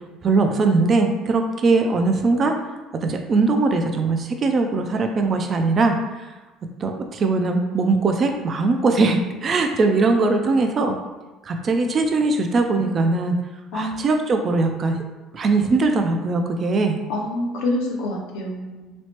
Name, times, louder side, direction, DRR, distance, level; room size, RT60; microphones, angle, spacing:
voice 1, 0.2-2.5 3.0-6.0 6.8-10.9 11.4-13.3 13.7-15.0 15.3-17.0, right 3 dB, 35° right, 4 dB, 0.3 m, -20 dB
voice 2, 13.7-14.1 17.1-19.0, left 1 dB, 85° left, -1 dB, 0.6 m, -27 dB
3.1 x 2.0 x 2.9 m, 1.1 s
cardioid pair, 120°, 0 cm